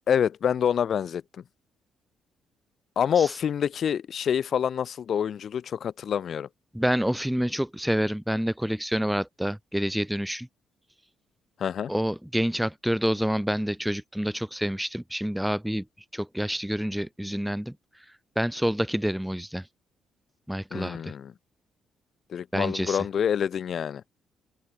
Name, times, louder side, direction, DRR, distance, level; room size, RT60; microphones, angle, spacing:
voice 1, 0.1-1.2 2.9-6.5 11.6-11.9 20.7-21.3 22.3-24.0, left 8 dB, 55° left, 6.7 m, -26 dB
voice 2, 6.7-10.5 11.9-15.8 16.1-17.7 18.4-19.6 20.5-21.1 22.5-23.0, equal, 5° right, 2.9 m, -28 dB
cardioid pair, 100°, 0 cm